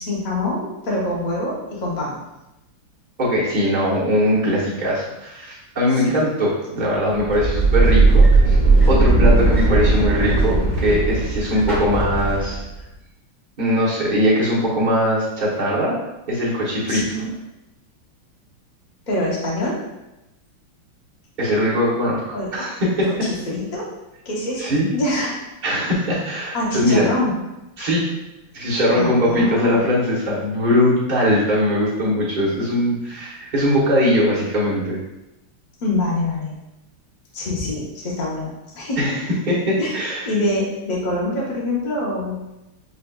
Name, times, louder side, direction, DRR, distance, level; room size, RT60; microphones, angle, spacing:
voice 1, 0.0-2.2 5.9-6.1 16.9-17.3 19.1-19.8 22.3-22.5 23.1-23.9 24.2-25.4 26.5-27.4 28.9-29.8 35.8-36.5 37.3-39.0 39.8-40.0 40.2-42.4, left 2 dB, 80° left, -4 dB, 0.4 m, -25 dB
voice 2, 3.2-8.6 8.9-12.6 13.6-16.0 16.3-17.0 21.4-23.3 24.6-24.9 25.6-27.1 27.8-28.1 28.5-35.0 39.0-39.2 39.5-40.3, equal, 40° right, -7 dB, 0.7 m, -20 dB
sound 1, 7.1-12.8, right 3 dB, ahead, 0.8 m, -17 dB
6.5 x 2.4 x 2.3 m, 0.95 s
omnidirectional pair, 2.3 m